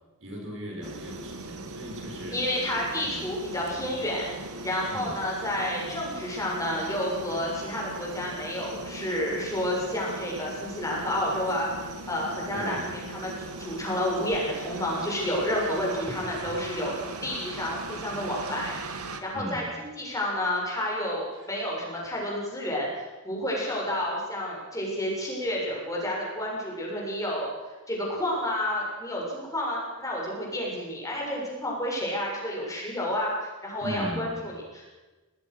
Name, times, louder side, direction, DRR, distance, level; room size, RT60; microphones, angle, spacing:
voice 1, 0.2-2.7 3.0-3.3 4.9-5.2 12.5-12.9 19.3-19.7 21.3-21.6 33.8-34.3, equal, 60° right, 0 dB, 6.8 m, -38 dB
sound 1, 0.8-19.2, right 3 dB, 85° right, 2.3 m, -39 dB
voice 2, 2.3-4.3 4.6-11.7 12.1-12.8 13.1-13.3 13.6-16.9 17.2-22.9 23.2-27.5 27.9-34.8, left 1 dB, 15° left, -3 dB, 7.1 m, -30 dB
29.0 x 19.5 x 6.3 m, 1.2 s
head